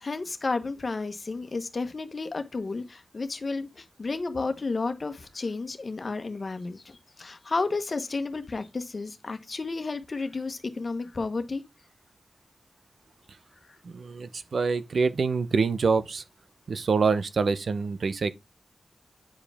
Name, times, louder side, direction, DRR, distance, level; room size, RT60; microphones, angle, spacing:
voice 1, 0.0-11.6, left 3 dB, 50° left, 1.2 m, -32 dB
voice 2, 13.8-16.2 16.7-18.3, right 4 dB, 75° right, 0.7 m, -26 dB
8.7 x 4.9 x 3.5 m
wide cardioid pair, 70°, 0 cm